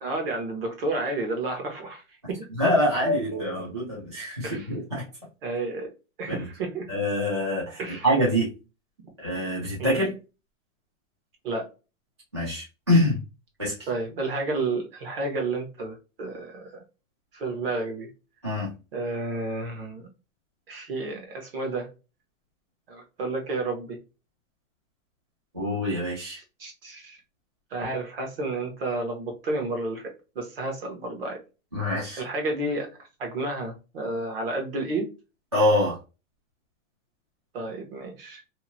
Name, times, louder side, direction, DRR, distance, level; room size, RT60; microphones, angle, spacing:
voice 1, 0.0-2.4 4.4-4.7 5.4-5.9 6.2-6.9 7.8-8.1 9.8-10.0 11.4-11.6 13.9-16.8 17.3-18.1 18.9-20.0 20.7-21.9 22.9-24.0 26.6-27.2 27.7-31.4 32.2-32.9 33.2-35.1 37.5-38.4, right 2 dB, 45° right, 2 dB, 1.0 m, -31 dB
voice 2, 2.6-5.0 6.3-6.4 6.9-8.5 9.2-10.1 12.3-13.2 13.6-13.7 18.4-18.7 25.5-26.4 31.7-32.2 35.5-36.0, left 1 dB, 25° right, -8 dB, 0.4 m, -25 dB
2.8 x 2.6 x 2.6 m, 0.30 s
hypercardioid pair, 180°, 40 cm